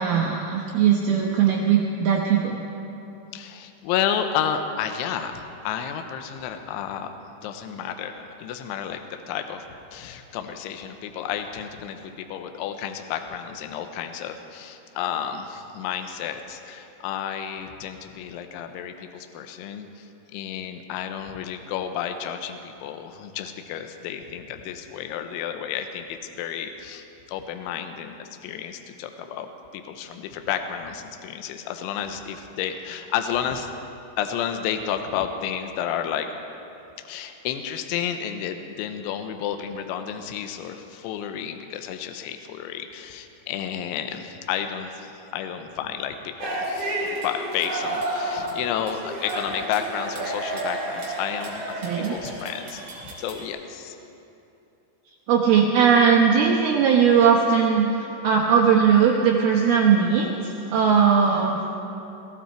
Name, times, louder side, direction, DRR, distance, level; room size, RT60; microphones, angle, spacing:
voice 1, 0.0-2.6 51.8-52.1 55.3-61.7, right 7 dB, 75° right, -2 dB, 2.4 m, -19 dB
voice 2, 3.3-9.6 9.9-29.5 29.7-33.7 34.2-36.3 37.0-54.0, left 9 dB, 80° left, 6 dB, 3.1 m, -31 dB
sound 1, 46.4-53.5, right 1 dB, 40° right, 4.5 m, -31 dB
21.0 x 15.0 x 4.5 m, 2.8 s
omnidirectional pair, 5.6 m